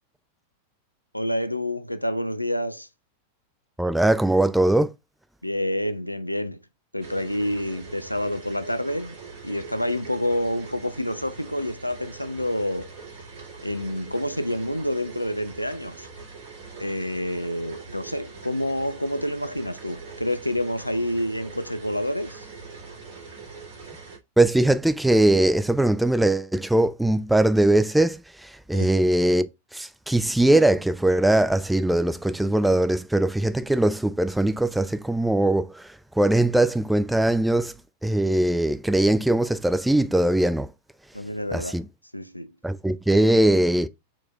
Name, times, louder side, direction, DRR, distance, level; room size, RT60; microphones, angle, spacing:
voice 1, 1.1-2.9 5.4-6.6 6.9-9.2 9.4-12.9 13.6-16.1 16.8-22.5 28.7-28.9 41.1-41.8 42.1-42.5, left 1 dB, 90° left, 0.4 m, -28 dB
voice 2, 3.8-4.9 24.4-35.9 36.2-37.7 38.0-40.7 41.5-41.9 42.6-43.9, right 1 dB, 5° right, 0.3 m, -21 dB
sound 1, 7.0-24.2, right 4 dB, 55° right, 2.2 m, -43 dB
4.5 x 4.1 x 2.4 m
figure-of-eight pair, 90°, 0 cm